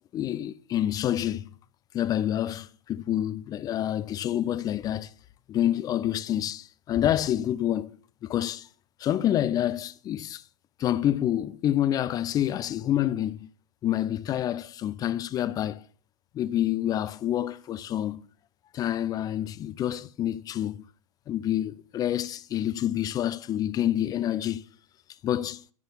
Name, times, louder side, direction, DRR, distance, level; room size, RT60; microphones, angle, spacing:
voice 1, 0.1-1.5 1.9-5.1 5.5-8.0 8.2-8.7 9.0-10.4 10.8-13.5 13.8-15.9 16.3-18.2 18.7-20.8 21.3-24.7 25.2-25.6, left 11 dB, 20° left, 0.5 m, -27 dB
11.0 x 7.9 x 7.0 m
figure-of-eight pair, 100°, 18 cm